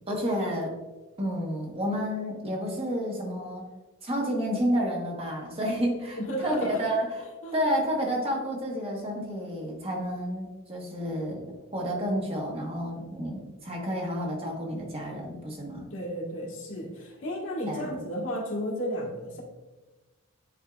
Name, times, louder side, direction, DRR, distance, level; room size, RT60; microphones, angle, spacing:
voice 1, 0.1-0.7 1.2-3.6 4.0-7.2 7.5-11.4 11.7-15.9 17.7-17.9, equal, 25° right, -1 dB, 1.2 m, -30 dB
voice 2, 6.2-6.8 7.4-7.6 15.9-19.4, equal, 60° left, -2 dB, 1.6 m, -33 dB
9.3 x 4.4 x 2.4 m, 1.2 s
head